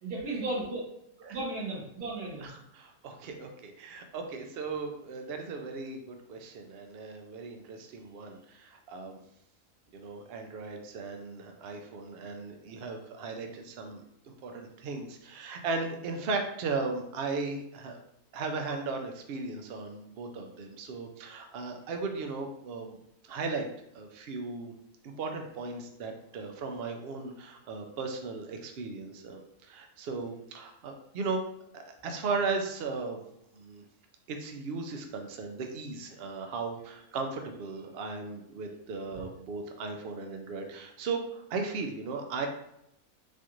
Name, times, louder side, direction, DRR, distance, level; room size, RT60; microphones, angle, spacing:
voice 1, 0.0-0.8 1.3-2.5 39.1-39.2, right 2 dB, 90° right, -5 dB, 1.8 m, -35 dB
voice 2, 2.4-9.2 9.9-14.0 14.4-18.0 18.3-23.0 23.2-23.7 23.9-24.7 25.0-31.4 31.7-33.2 33.5-33.8 34.3-42.5, right 4 dB, 65° right, 4 dB, 0.6 m, -36 dB
4.2 x 2.5 x 3.0 m, 0.77 s
omnidirectional pair, 1.6 m